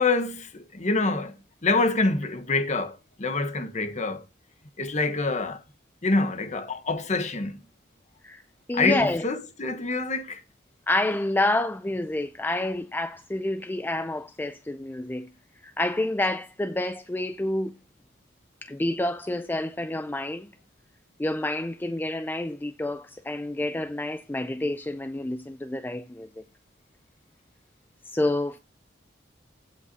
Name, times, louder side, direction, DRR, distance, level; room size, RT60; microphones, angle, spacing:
voice 1, 0.0-1.3 1.6-4.2 4.8-5.6 6.0-7.6 8.7-10.4, left 3 dB, 40° left, 1.2 m, -26 dB
voice 2, 8.7-9.3 10.9-15.3 15.6-17.7 18.6-20.5 21.2-26.4 28.1-28.6, left 1 dB, 10° left, 0.4 m, -28 dB
16.5 x 5.8 x 2.7 m
head